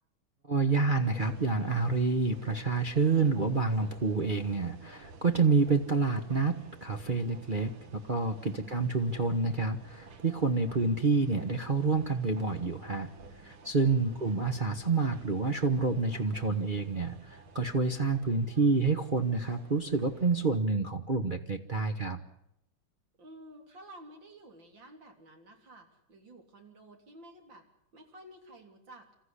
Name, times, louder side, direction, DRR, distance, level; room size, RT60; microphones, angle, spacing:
voice 1, 0.5-6.6 6.8-13.1 13.4-22.2, right 4 dB, 30° right, 4 dB, 1.0 m, -28 dB
sound 1, 1.0-20.6, right 4 dB, 85° right, 2.6 m, -52 dB
voice 2, 8.6-9.1 14.0-14.3 23.2-27.7 27.9-29.1, right 1 dB, 60° right, 3 dB, 4.1 m, -52 dB
28.0 x 14.5 x 9.9 m, 0.80 s
omnidirectional pair, 2.3 m